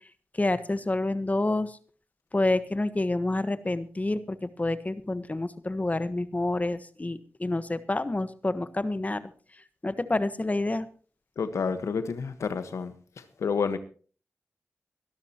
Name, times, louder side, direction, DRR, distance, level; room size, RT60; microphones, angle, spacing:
voice 1, 0.3-1.8 2.3-9.3 9.8-10.9, left 2 dB, 30° left, 1.3 m, -28 dB
voice 2, 11.4-13.8, left 5 dB, 85° left, 1.4 m, -30 dB
22.5 x 12.5 x 3.0 m
cardioid pair, 45°, 5 cm